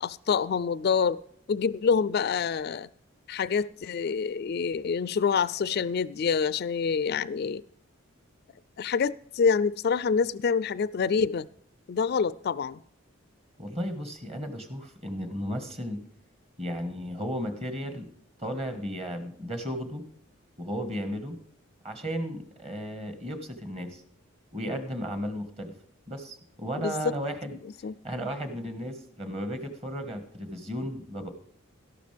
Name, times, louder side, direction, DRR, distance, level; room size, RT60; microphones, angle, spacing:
voice 1, 0.0-1.2 1.5-2.9 3.3-7.6 8.8-11.5 11.9-12.8 26.8-27.0 27.5-27.6 27.8-28.0, left 6 dB, 50° left, 18 dB, 0.3 m, -26 dB
voice 2, 13.6-16.0 16.6-18.1 18.4-20.0 20.6-21.4 21.8-24.0 24.5-25.7 26.1-27.6 28.0-31.3, equal, 30° right, 7 dB, 1.6 m, -34 dB
13.0 x 11.5 x 3.4 m, 0.65 s
head